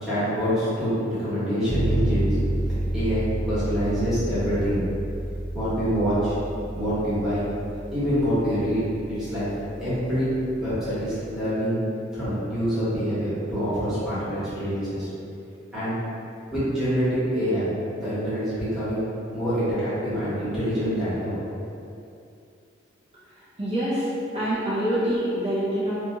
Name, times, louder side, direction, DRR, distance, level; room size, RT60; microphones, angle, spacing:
voice 1, 0.0-2.4 2.9-4.8 5.5-6.4 6.7-7.5 7.9-8.8 9.1-9.5 9.8-10.3 10.6-11.8 12.1-15.1 15.7-16.0 16.5-19.0 19.3-21.4, equal, ahead, -14 dB, 1.0 m, -26 dB
sound 1, 1.7-11.4, right 1 dB, 90° left, 0.6 m, -30 dB
voice 2, 23.6-26.0, equal, 35° right, -12 dB, 0.6 m, -25 dB
2.7 x 2.3 x 2.8 m, 2.6 s
head